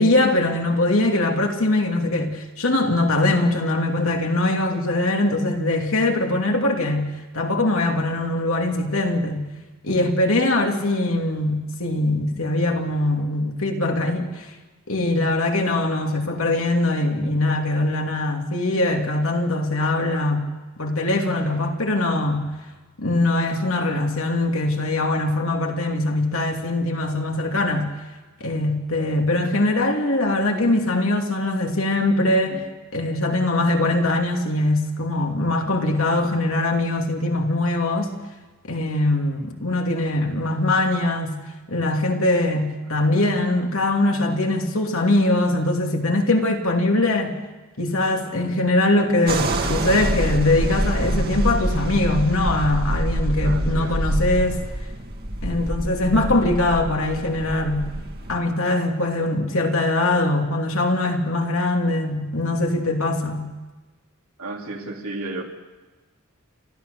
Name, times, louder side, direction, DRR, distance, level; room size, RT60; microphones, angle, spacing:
voice 1, 0.0-9.5 9.8-14.5 14.9-20.5 20.8-22.5 23.0-27.9 28.4-32.6 32.9-38.2 38.6-41.4 41.7-47.4 47.8-54.6 55.4-57.9 58.3-63.5, left 2 dB, 70° left, 2 dB, 2.7 m, -22 dB
sound 1, 49.3-58.4, right 1 dB, 45° right, 2.1 m, -26 dB
voice 2, 53.4-54.0 64.4-65.4, right 2 dB, 80° right, 1 dB, 3.0 m, -33 dB
29.5 x 13.0 x 6.8 m, 1.2 s
head